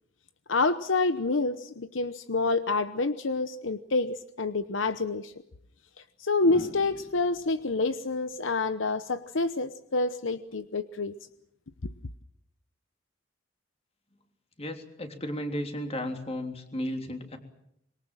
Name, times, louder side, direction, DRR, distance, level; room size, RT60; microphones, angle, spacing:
voice 1, 0.5-5.3 6.2-11.1, left 3 dB, 80° left, 12 dB, 0.9 m, -28 dB
sound 1, 4.8-5.0 6.4-9.4 11.0-11.3, equal, 15° right, 2.6 m, -48 dB
voice 2, 14.6-17.4, left 1 dB, 35° left, 4 dB, 3.4 m, -34 dB
25.5 x 22.5 x 7.5 m, 0.76 s
head